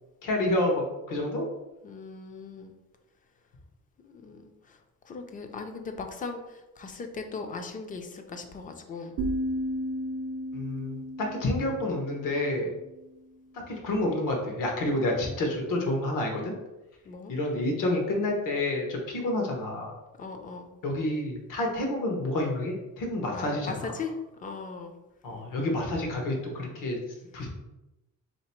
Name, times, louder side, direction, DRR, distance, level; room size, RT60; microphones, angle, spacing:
voice 1, 0.2-1.4 10.5-12.7 13.7-16.5 17.3-20.0 20.8-23.7 25.2-27.0 27.3-27.5, left 1 dB, 75° left, 1 dB, 1.1 m, -29 dB
voice 2, 1.8-2.8 4.0-4.8 5.0-9.2 17.0-17.3 20.2-20.7 23.3-25.0, left 4 dB, 25° left, 5 dB, 0.3 m, -39 dB
sound 1, 9.2-13.1, equal, 60° right, 0.6 m, -34 dB
3.5 x 2.9 x 4.3 m, 1.0 s
cardioid pair, 180°, 32 cm